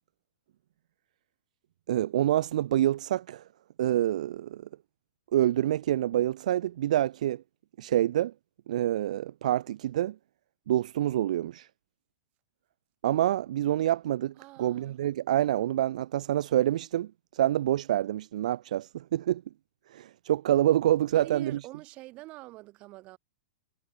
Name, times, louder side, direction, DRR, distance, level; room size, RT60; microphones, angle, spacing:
voice 1, 1.9-3.4 3.8-4.6 5.3-7.4 7.8-8.3 8.7-10.2 10.7-11.7 13.0-19.4 19.9-21.6, right 12 dB, 65° right, 0.4 m, -27 dB
voice 2, 14.4-15.1 21.1-23.2, right 20 dB, 30° right, 6.9 m, -46 dB
supercardioid pair, 160°, 4 cm